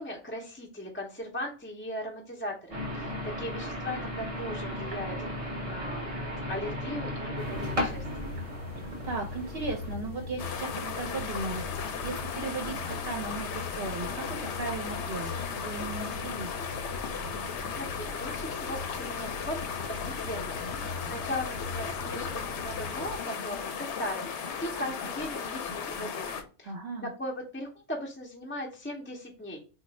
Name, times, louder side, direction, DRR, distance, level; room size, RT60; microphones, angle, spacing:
voice 1, 0.0-6.1 6.5-8.0 17.8-26.7 27.0-29.6, left 1 dB, 15° left, -1 dB, 0.5 m, -38 dB
sound 1, 2.7-9.9, equal, 35° right, 0.7 m, -35 dB
sound 2, 7.4-23.2, left 2 dB, 60° left, 1.0 m, -41 dB
voice 2, 8.8-16.5 26.6-27.1, right 3 dB, 65° right, 1 dB, 0.8 m, -37 dB
sound 3, 10.4-26.4, left 6 dB, 85° left, 0.9 m, -36 dB
3.1 x 2.3 x 4.0 m, 0.35 s
omnidirectional pair, 1.1 m